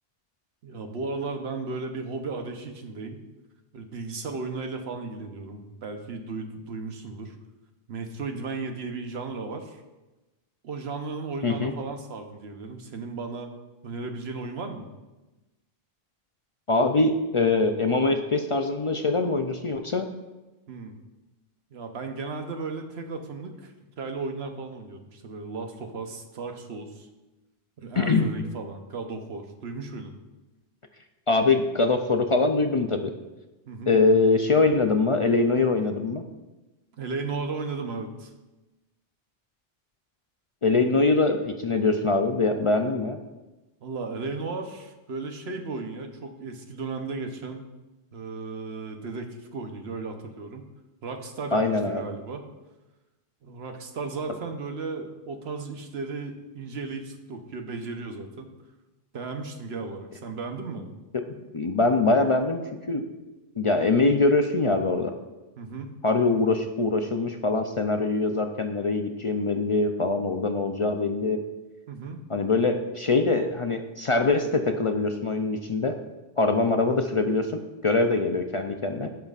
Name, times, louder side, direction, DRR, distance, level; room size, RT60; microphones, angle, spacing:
voice 1, 0.6-3.2 3.7-7.4 7.9-9.8 10.6-13.5 13.8-14.9 20.7-20.9 21.7-27.1 27.8-30.1 33.7-33.9 37.0-38.3 43.8-47.7 48.1-50.7 51.0-52.5 53.4-58.5 59.1-60.9 65.6-66.0 71.9-72.2, right 4 dB, 85° right, 5 dB, 1.1 m, -35 dB
voice 2, 16.7-20.1 28.0-28.3 31.3-33.1 33.9-36.2 40.6-43.2 51.5-52.0 61.1-61.2 61.5-62.6 62.9-63.0 63.6-65.1 66.0-71.4 72.3-76.0 76.4-77.5 77.8-79.1, left 3 dB, 45° left, 5 dB, 0.4 m, -23 dB
15.5 x 5.7 x 2.4 m, 1.1 s
omnidirectional pair, 1.0 m